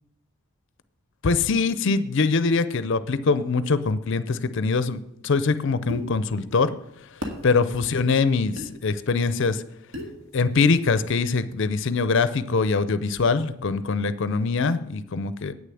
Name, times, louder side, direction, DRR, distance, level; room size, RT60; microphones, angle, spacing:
voice 1, 1.2-6.7 7.1-9.6 10.3-15.5, left 4 dB, 55° left, 13 dB, 0.5 m, -23 dB
sound 1, 5.9-6.1 7.2-7.4 8.6-8.7 9.9-10.2, left 2 dB, 70° right, 1.8 m, -32 dB
8.9 x 6.7 x 7.6 m, 0.78 s
head